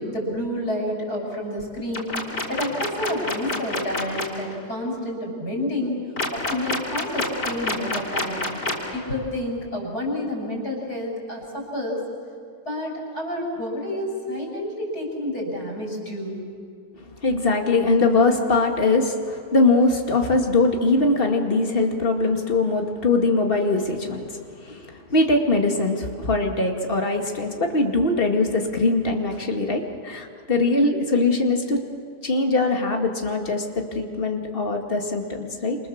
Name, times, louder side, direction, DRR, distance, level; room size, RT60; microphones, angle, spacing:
voice 1, 0.0-2.1 2.5-6.0 6.3-8.5 8.9-12.0 12.6-16.4 24.7-24.8, left 1 dB, 70° left, 0 dB, 7.1 m, -29 dB
sound 1, 1.9-4.3 6.2-8.9, left 2 dB, 90° left, 4.3 m, -26 dB
voice 2, 17.2-24.3 24.6-31.8 32.2-35.8, left 3 dB, 35° left, 3 dB, 2.4 m, -22 dB
28.0 x 27.5 x 7.3 m, 2.3 s
omnidirectional pair, 1.8 m